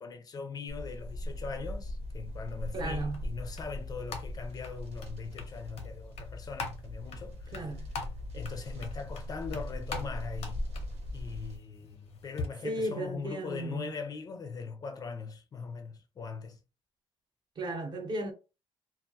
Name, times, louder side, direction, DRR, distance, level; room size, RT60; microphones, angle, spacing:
voice 1, 0.0-7.7 8.3-10.7 11.1-16.6, left 5 dB, 35° left, 0.4 m, -41 dB
sound 1, 0.7-11.6, left 1 dB, 90° right, 0.9 m, -40 dB
voice 2, 2.7-3.2 7.5-7.9 12.6-13.9 17.6-18.3, right 1 dB, 45° right, 0.7 m, -35 dB
sound 2, 2.8-12.5, left 4 dB, 85° left, 0.7 m, -44 dB
2.3 x 2.2 x 2.6 m
cardioid pair, 155°, 11 cm